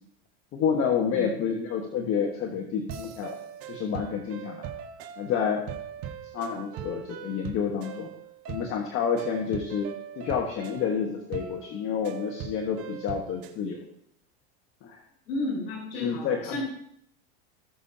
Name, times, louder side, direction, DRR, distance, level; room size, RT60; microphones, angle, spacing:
voice 1, 0.5-3.3 3.7-4.7 5.2-5.6 6.3-8.1 8.5-9.9 10.2-13.8 14.8-15.0 16.0-16.6, left 7 dB, 45° left, 2 dB, 1.5 m, -29 dB
voice 2, 1.1-1.4 9.4-9.5 15.3-16.6, left 2 dB, 80° left, -3 dB, 4.4 m, -33 dB
sound 1, 2.9-13.6, right 8 dB, 50° right, 1.7 m, -41 dB
19.0 x 6.5 x 2.9 m, 0.70 s
supercardioid pair, 125°, 30 cm